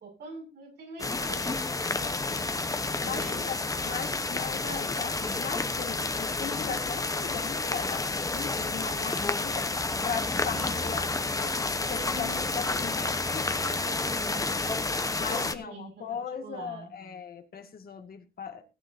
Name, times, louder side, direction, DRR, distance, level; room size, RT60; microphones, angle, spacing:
voice 1, 0.0-1.6 3.0-3.5 10.5-10.9 11.9-14.8 15.3-16.9, right 2 dB, 85° right, 1 dB, 6.8 m, -45 dB
sound 1, 1.0-15.5, left 3 dB, 20° left, 1.1 m, -30 dB
voice 2, 1.7-2.5 3.0-3.6 3.8-9.7 10.0-13.5 15.2-18.6, left 6 dB, 65° left, 5 dB, 2.2 m, -38 dB
17.5 x 9.9 x 2.8 m, 0.28 s
cardioid pair, 100°, 17 cm